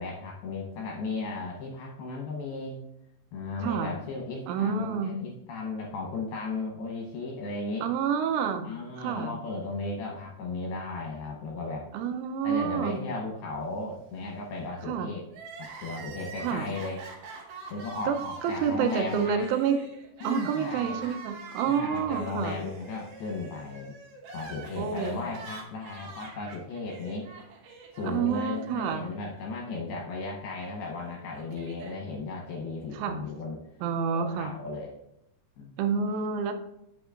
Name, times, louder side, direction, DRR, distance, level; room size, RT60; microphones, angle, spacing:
voice 1, 0.0-2.8 3.3-7.9 8.6-11.9 12.4-15.2 15.6-17.0 17.7-19.5 20.2-21.0 21.7-24.0 24.3-27.3 27.9-33.6 34.0-34.9 35.6-35.7, left 3 dB, 75° left, -1 dB, 2.4 m, -35 dB
voice 2, 3.6-3.9 4.5-5.2 7.8-8.7 9.0-9.3 11.9-13.0 14.8-15.1 16.4-16.7 18.0-19.8 20.2-22.6 24.8-25.3 28.0-29.1 32.9-33.2 33.8-34.5 35.8-36.5, right 7 dB, 85° right, 6 dB, 3.2 m, -28 dB
Crying sobbing, 15.3-29.5 29.7-29.8 30.8-32.0, right 4 dB, 65° right, 2.1 m, -44 dB
8.8 x 8.1 x 2.5 m, 0.82 s
omnidirectional pair, 5.6 m